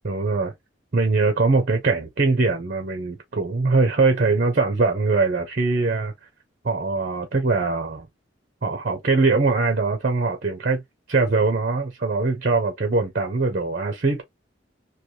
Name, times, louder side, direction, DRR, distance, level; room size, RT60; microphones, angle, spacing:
voice 1, 0.0-0.5 0.9-6.1 6.6-8.1 8.6-10.8 11.1-14.2, right 3 dB, 45° right, 0.7 m, -22 dB
3.3 x 2.3 x 2.7 m
head